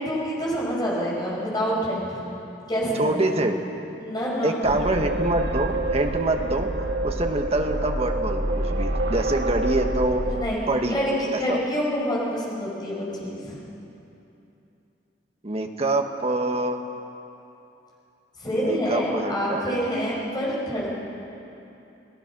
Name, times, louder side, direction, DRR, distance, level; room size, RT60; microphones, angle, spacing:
voice 1, 0.0-2.2 2.7-3.3 4.0-4.9 10.3-13.6 18.4-20.9, equal, 25° left, -5 dB, 6.2 m, -27 dB
voice 2, 2.9-3.6 4.4-6.7 7.0-10.2 10.7-11.0 11.3-11.6 15.4-16.8 18.5-19.8, right 2 dB, 35° right, 4 dB, 1.4 m, -25 dB
sound 1, 4.6-10.4, right 1 dB, 70° right, 1.5 m, -27 dB
28.5 x 18.0 x 6.1 m, 2.9 s
head